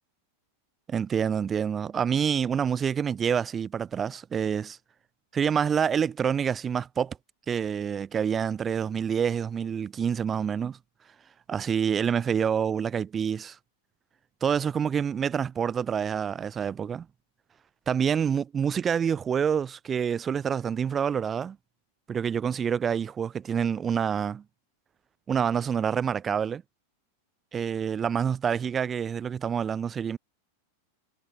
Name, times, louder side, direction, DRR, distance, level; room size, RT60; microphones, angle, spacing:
voice 1, 0.9-4.8 5.3-7.2 7.5-10.8 11.5-13.6 14.4-17.1 17.9-21.6 22.1-24.4 25.3-26.6 27.5-30.2, right 7 dB, 20° right, 4.7 m, -27 dB
figure-of-eight pair, 90°, 0 cm